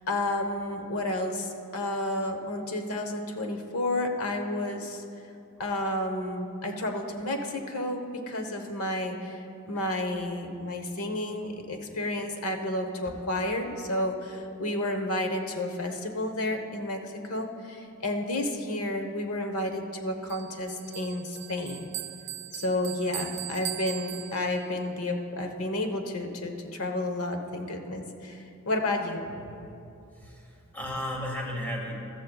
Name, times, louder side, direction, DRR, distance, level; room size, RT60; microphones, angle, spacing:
voice 1, 0.1-5.0 5.6-21.8 22.5-29.2 29.6-29.8, left 1 dB, 85° left, 4 dB, 1.1 m, -31 dB
Bell, 20.3-24.8, right 13 dB, 50° right, 0.4 m, -39 dB
voice 2, 30.1-31.9, left 1 dB, 10° left, -2 dB, 1.8 m, -34 dB
14.5 x 13.5 x 2.4 m, 2.6 s
head